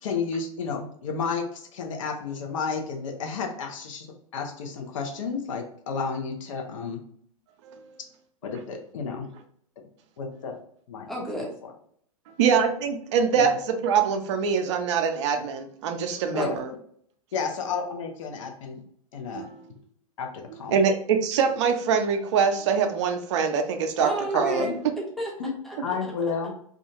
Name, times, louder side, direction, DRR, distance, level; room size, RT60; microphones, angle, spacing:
voice 1, 0.0-4.1 4.3-7.0 8.4-9.3 10.2-10.6 10.9-11.1 13.4-13.5 16.3-16.5 17.3-18.8 19.1-19.5 20.2-20.8 24.3-24.8 25.4-25.5 25.8-26.5, left 5 dB, 60° left, 2 dB, 0.6 m, -31 dB
voice 2, 11.1-11.5 16.3-16.5 24.0-25.3 25.6-26.0, right 1 dB, ahead, -2 dB, 0.6 m, -31 dB
voice 3, 12.4-13.5 13.8-16.7 19.3-19.7 20.7-24.1 24.3-24.7, right 6 dB, 55° right, 5 dB, 0.5 m, -24 dB
2.4 x 2.3 x 2.8 m, 0.65 s
figure-of-eight pair, 100°, 18 cm